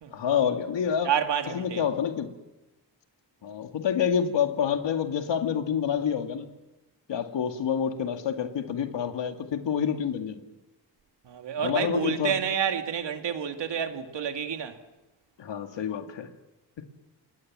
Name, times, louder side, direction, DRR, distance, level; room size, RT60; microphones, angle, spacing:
voice 1, 0.1-1.1 1.5-2.3 3.4-6.5 7.1-10.4 11.6-12.3 15.4-16.3, left 8 dB, 85° left, 2.2 m, -27 dB
voice 2, 1.0-1.8 11.2-14.8, right 8 dB, 80° right, 2.4 m, -29 dB
27.5 x 20.0 x 7.6 m
cardioid pair, 85°, 42 cm